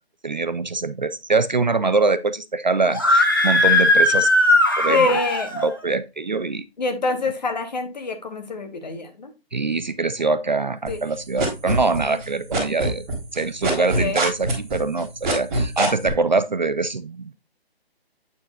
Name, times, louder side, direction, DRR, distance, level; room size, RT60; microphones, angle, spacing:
voice 1, 0.2-4.3 4.8-5.2 5.6-6.6 9.5-13.0 13.3-17.3, right 3 dB, 45° right, 0.4 m, -23 dB
Screaming, 2.9-5.7, left 2 dB, 20° left, 0.6 m, -18 dB
voice 2, 4.9-5.5 6.8-9.3 10.9-11.0 12.1-12.2 13.8-14.2, left 3 dB, 45° left, 1.4 m, -26 dB
sound 1, 10.9-12.2 12.5-16.1, right 1 dB, 5° right, 1.1 m, -23 dB
8.7 x 6.1 x 2.4 m
hypercardioid pair, 175°, 31 cm